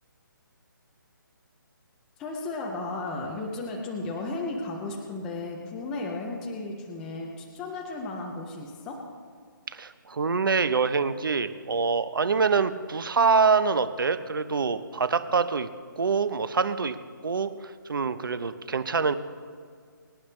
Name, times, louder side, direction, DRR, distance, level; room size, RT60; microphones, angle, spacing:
voice 1, 2.2-9.0, left 2 dB, 5° left, -1 dB, 0.4 m, -34 dB
voice 2, 9.7-15.7 16.0-16.9 17.2-19.2, right 5 dB, 75° right, 12 dB, 0.9 m, -25 dB
24.5 x 9.9 x 3.2 m, 2.1 s
hypercardioid pair, 175°, 11 cm